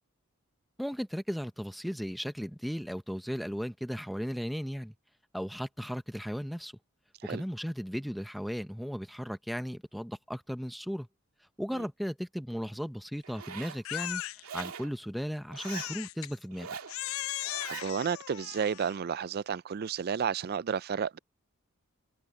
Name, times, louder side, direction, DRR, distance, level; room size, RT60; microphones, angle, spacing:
voice 1, 0.8-4.9 5.3-6.7 7.2-11.1 11.6-14.2 14.5-16.7, equal, ahead, 0.9 m, -36 dB
Zipper (clothing), 13.2-13.8 14.4-14.9 15.5-15.9 16.5-17.0 17.4-17.9, right 6 dB, 85° right, 2.3 m, -42 dB
Crying sobbing, 13.8-14.7 15.6-16.3 16.9-19.0, left 15 dB, 70° left, 0.3 m, -38 dB
voice 2, 17.7-21.2, right 7 dB, 45° right, 0.4 m, -32 dB
head